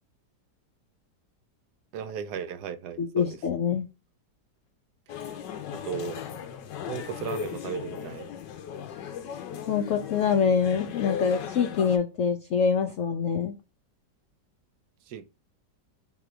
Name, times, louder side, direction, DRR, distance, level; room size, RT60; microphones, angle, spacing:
voice 1, 1.9-3.3 5.8-6.2 6.9-8.3 15.1-15.2, right 8 dB, 75° right, 1.1 m, -35 dB
voice 2, 3.0-3.9 9.7-13.5, left 6 dB, 65° left, 0.8 m, -25 dB
sound 1, 5.1-12.0, left 8 dB, 85° left, 1.3 m, -37 dB
3.6 x 3.0 x 4.6 m
omnidirectional pair, 1.8 m